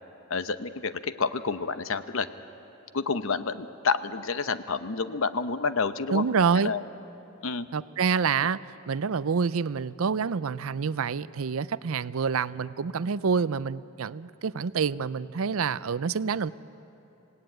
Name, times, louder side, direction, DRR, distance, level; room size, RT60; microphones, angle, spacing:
voice 1, 0.3-2.3 2.9-6.2 6.6-6.8 7.4-7.7, left 4 dB, 70° left, 12 dB, 0.8 m, -29 dB
voice 2, 6.1-6.7 7.7-8.6 8.9-16.5, right 5 dB, 75° right, 17 dB, 0.5 m, -27 dB
27.0 x 18.0 x 9.2 m, 3.0 s
head